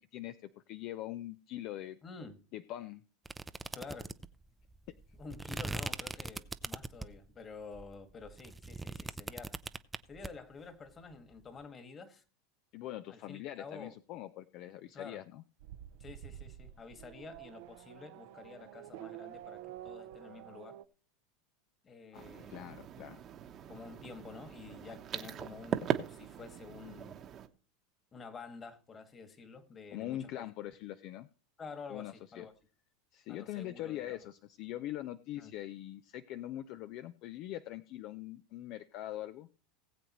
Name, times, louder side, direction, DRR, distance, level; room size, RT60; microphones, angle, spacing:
voice 1, 0.0-2.0 2.5-3.0 12.7-15.4 22.1-23.2 29.9-31.3 31.9-32.4 33.1-39.5, left 13 dB, 55° left, 0.5 m, -43 dB
voice 2, 2.0-2.4 3.7-4.1 5.2-9.6 10.1-12.2 13.1-13.9 14.9-15.2 16.0-20.8 21.8-22.7 23.7-27.2 28.1-30.5 31.6-32.5 33.3-34.2 35.4-35.6, left 4 dB, 30° left, 2.0 m, -49 dB
sound 1, 3.2-7.3 7.7-10.3, right 3 dB, 10° right, 0.6 m, -41 dB
Race car auto racing / Accelerating revving vroom, 15.6-20.8, right 13 dB, 65° right, 0.6 m, -49 dB
sound 2, 22.1-27.5, right 9 dB, 40° right, 1.1 m, -40 dB
19.0 x 7.8 x 3.1 m
hypercardioid pair, 100°, 0 cm